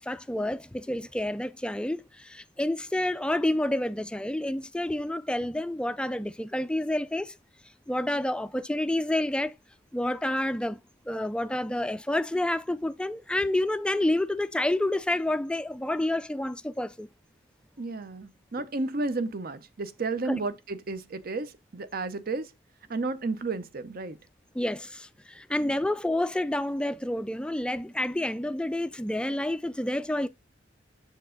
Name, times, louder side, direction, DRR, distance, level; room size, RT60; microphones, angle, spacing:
voice 1, 0.0-7.3 7.9-9.5 9.9-10.8 11.1-17.1 20.3-20.4 24.5-30.3, left 1 dB, 5° left, 0.3 m, -29 dB
voice 2, 17.8-22.5 22.9-24.2 25.6-25.7, right 3 dB, 50° right, 0.7 m, -32 dB
7.6 x 4.6 x 3.8 m
head